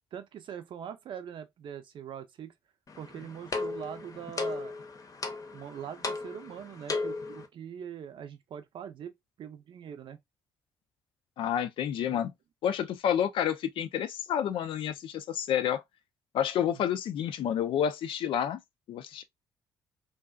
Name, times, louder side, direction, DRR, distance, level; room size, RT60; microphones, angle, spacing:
voice 1, 0.1-2.5 3.0-4.8 5.5-9.1 9.4-10.2 12.1-12.3 16.7-16.8, right 8 dB, 60° right, 0.6 m, -42 dB
sound 1, 2.9-7.5, left 3 dB, 35° left, 0.7 m, -36 dB
voice 2, 11.4-12.3 12.6-15.8 16.3-18.6 18.9-19.2, left 9 dB, 65° left, 0.4 m, -29 dB
2.6 x 2.3 x 2.3 m
hypercardioid pair, 50°, 10 cm